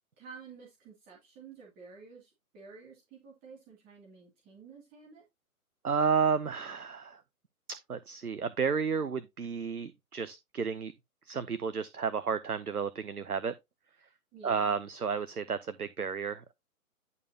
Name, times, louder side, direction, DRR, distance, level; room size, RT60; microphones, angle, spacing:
voice 1, 0.2-5.2 14.3-14.7, right 5 dB, 20° right, 2.5 m, -51 dB
voice 2, 5.8-7.2 7.7-10.9 11.2-13.5 14.4-16.5, right 6 dB, 90° right, 0.8 m, -32 dB
11.0 x 5.5 x 2.8 m
figure-of-eight pair, 130°, 44 cm